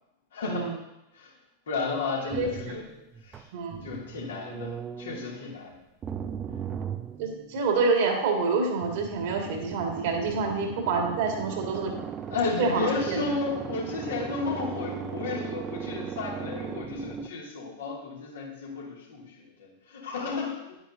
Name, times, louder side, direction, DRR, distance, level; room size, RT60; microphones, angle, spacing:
voice 1, 0.3-0.7 1.1-1.3 1.7-2.9 3.2-3.5 3.8-5.8 12.3-20.8, left 4 dB, 65° left, -2 dB, 2.5 m, -33 dB
sound 1, 2.3-5.4 6.0-7.8 8.8-17.3, right 7 dB, 25° right, 0.6 m, -38 dB
voice 2, 2.3-2.7 3.5-3.8 7.2-11.9 12.6-13.2, right 4 dB, 50° right, 2 dB, 2.0 m, -27 dB
10.0 x 9.8 x 2.7 m, 0.90 s
figure-of-eight pair, 90°, 0 cm